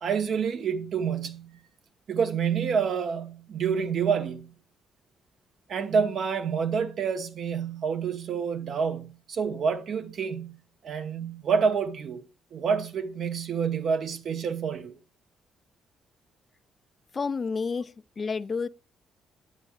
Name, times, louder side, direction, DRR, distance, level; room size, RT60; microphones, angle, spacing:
voice 1, 0.0-1.5 2.1-4.5 5.7-10.6 10.8-12.2 12.5-15.0, right 6 dB, 60° right, 1.0 m, -28 dB
voice 2, 17.1-18.7, left 5 dB, 35° left, 0.3 m, -30 dB
10.5 x 8.0 x 2.4 m
cardioid pair, 90°, 0 cm